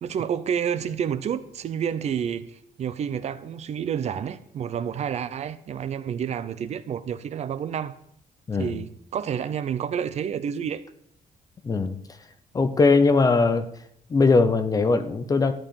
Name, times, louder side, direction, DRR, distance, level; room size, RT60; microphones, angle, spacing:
voice 1, 0.0-7.9 8.6-10.8, right 8 dB, 50° right, 0.6 m, -29 dB
voice 2, 11.6-12.0 12.5-13.7 14.1-15.5, left 3 dB, 25° left, 0.7 m, -20 dB
13.5 x 4.8 x 8.8 m
wide cardioid pair, 175°, 15 cm